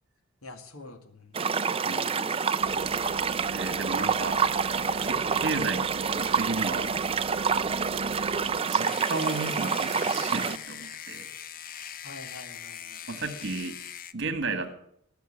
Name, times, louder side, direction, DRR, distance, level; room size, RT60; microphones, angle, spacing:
voice 1, 0.4-2.0 12.0-13.1, left 2 dB, 85° left, 7 dB, 2.0 m, -47 dB
sound 1, 1.3-10.6, right 5 dB, 25° right, 0.5 m, -27 dB
voice 2, 1.8-2.3 3.5-4.4 5.0-7.0 7.3-8.3 8.6-11.3 13.1-13.8 14.1-14.7, right 3 dB, 55° right, 9 dB, 1.9 m, -34 dB
sound 2, 2.6-8.6, right 3 dB, 75° right, 0.6 m, -43 dB
sound 3, 8.8-14.1, left 9 dB, 40° left, 0.6 m, -41 dB
19.0 x 6.7 x 8.6 m, 0.69 s
head